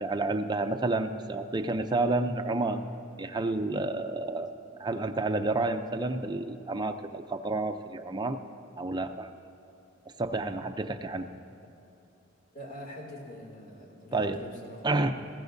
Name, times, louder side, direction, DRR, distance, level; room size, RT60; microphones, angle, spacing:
voice 1, 0.0-2.8 3.2-4.5 4.8-8.4 8.8-9.3 10.2-11.3 14.1-14.4 14.8-15.1, right 2 dB, 20° right, 6 dB, 0.5 m, -30 dB
voice 2, 12.5-14.9, equal, 50° left, -1 dB, 2.4 m, -44 dB
19.5 x 15.5 x 2.6 m, 2.8 s
head